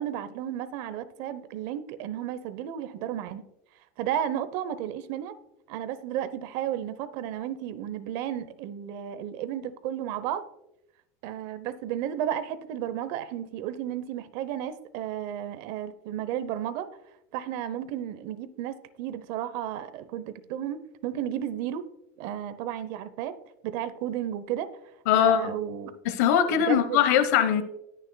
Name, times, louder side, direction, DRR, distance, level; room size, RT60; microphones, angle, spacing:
voice 1, 0.0-3.4 4.0-5.3 5.7-10.5 11.2-16.9 17.3-21.9 22.2-23.4 23.6-24.7 25.1-25.9 26.5-27.0, right 10 dB, 55° right, 13 dB, 0.8 m, -33 dB
voice 2, 25.1-25.5 26.0-27.6, left 9 dB, 75° left, 12 dB, 0.9 m, -21 dB
19.0 x 6.6 x 2.2 m, 0.85 s
supercardioid pair, 150°, 9 cm